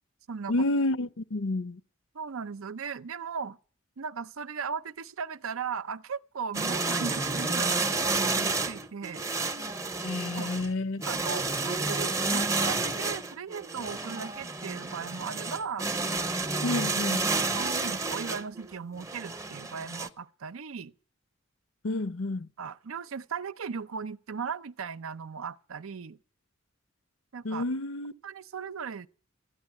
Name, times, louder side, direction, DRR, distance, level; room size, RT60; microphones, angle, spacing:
voice 1, 0.5-1.8 10.0-11.0 16.6-17.2 21.8-22.5 27.4-28.1, left 2 dB, 70° left, 0.6 m, -29 dB
voice 2, 2.1-3.6 4.0-9.2 10.3-10.5 11.1-15.9 17.2-20.9 22.6-26.2 27.3-27.6 28.2-29.1, right 6 dB, 85° right, 0.6 m, -37 dB
sound 1, 6.5-20.1, right 3 dB, 15° right, 0.6 m, -30 dB
13.5 x 8.9 x 9.6 m
head